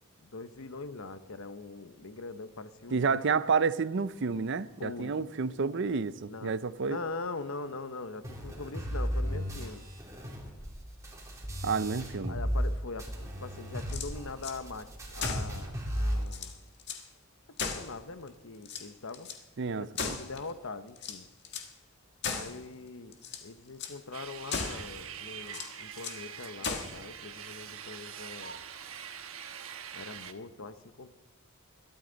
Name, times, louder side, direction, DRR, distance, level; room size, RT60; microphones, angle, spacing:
voice 1, 0.2-3.2 4.8-5.1 6.3-6.5 6.8-9.9 12.3-16.6 17.6-19.3 19.8-21.3 22.3-23.1 23.4-28.6 29.9-31.1, left 3 dB, 70° left, 0.9 m, -42 dB
voice 2, 2.9-7.0 11.6-12.4 19.6-20.2, right 5 dB, 55° right, 0.5 m, -30 dB
sound 1, 8.2-12.7 13.0-16.2, equal, 15° right, 2.8 m, -35 dB
sound 2, 13.8-14.6 15.2-15.6 16.0-16.1 16.3-17.1 17.6-18.3 18.6-19.4 20.0-20.5 21.0-21.7 22.2-22.6 23.1-23.5 23.8-24.0 24.5-24.9 25.5-26.2 26.6-27.0, left 5 dB, 50° left, 1.6 m, -37 dB
sound 3, 24.1-30.3, right 8 dB, 70° right, 1.1 m, -44 dB
21.5 x 13.0 x 4.0 m
head